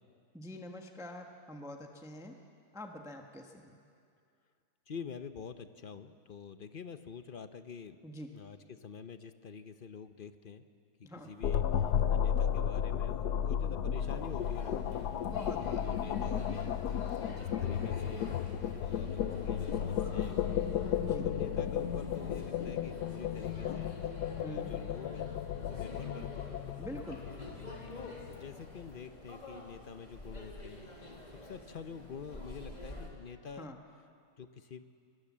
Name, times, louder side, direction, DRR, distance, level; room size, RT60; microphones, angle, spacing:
voice 1, 0.3-2.4 2.7-3.8 8.0-8.3 11.0-11.3 15.2-15.9 21.0-21.3 24.4-24.7 26.8-27.3 33.6-33.8, equal, ahead, 3 dB, 1.2 m, -45 dB
voice 2, 4.9-8.0 8.3-10.7 11.3-15.1 15.6-18.3 18.8-26.5 27.9-33.7 34.4-34.8, left 6 dB, 45° left, 10 dB, 0.7 m, -47 dB
sound 1, 11.4-28.7, left 9 dB, 85° left, 1.4 m, -34 dB
sound 2, 14.0-33.1, left 1 dB, 25° left, 2.9 m, -49 dB
23.5 x 21.0 x 7.4 m, 2.3 s
omnidirectional pair, 1.7 m